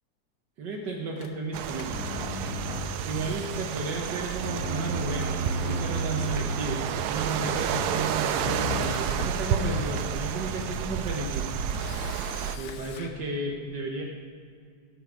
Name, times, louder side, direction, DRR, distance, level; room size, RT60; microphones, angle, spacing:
voice 1, 0.6-2.0 3.0-11.5 12.4-14.0, right 2 dB, 65° right, 0 dB, 1.1 m, -33 dB
Camera, 1.2-2.7 3.0-3.1 3.4-4.3 5.2-5.5 5.7-5.8 8.3-8.4 8.7-9.5 10.0-10.2 11.7-13.1, left 7 dB, 75° left, 1.1 m, -46 dB
sound 1, 1.5-12.6, right 8 dB, 85° right, 1.9 m, -31 dB
sound 2, 1.8-3.4 4.3-6.9 8.3-9.4, right 1 dB, 10° right, 1.2 m, -33 dB
19.0 x 7.3 x 5.2 m, 2.3 s
omnidirectional pair, 3.4 m